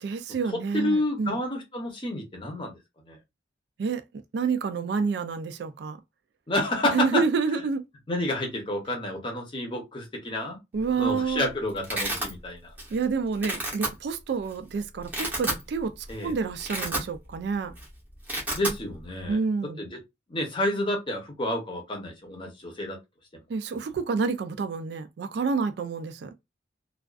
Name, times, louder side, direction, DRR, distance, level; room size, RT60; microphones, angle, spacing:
voice 1, 0.0-1.4 3.8-4.0 4.3-6.0 6.8-7.8 10.7-11.5 12.9-17.7 19.3-19.8 23.5-26.3, right 5 dB, 55° right, 0.3 m, -28 dB
voice 2, 0.5-2.8 3.1-3.2 6.5-7.2 8.1-10.6 11.0-12.7 16.1-16.3 18.6-19.4 19.8-20.0 20.3-23.0, left 1 dB, 25° left, 0.7 m, -29 dB
Domestic sounds home sounds, 10.8-11.2 11.4-12.3 12.8-13.0 13.3-13.9 14.5-14.6 15.0-15.6 16.0-16.2 16.5-17.4 17.7-17.9 18.1-18.8, right 1 dB, 10° right, 0.7 m, -30 dB
2.4 x 2.3 x 2.2 m
head